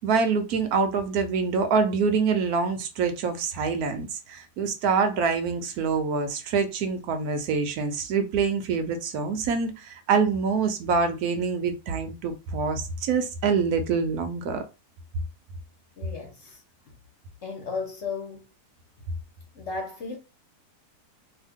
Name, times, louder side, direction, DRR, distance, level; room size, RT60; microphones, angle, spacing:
voice 1, 0.0-14.6, right 5 dB, 70° right, 1.0 m, -25 dB
voice 2, 16.0-16.6 17.4-18.5 19.5-20.2, left 4 dB, 50° left, 1.0 m, -34 dB
2.7 x 2.3 x 3.5 m
omnidirectional pair, 1.8 m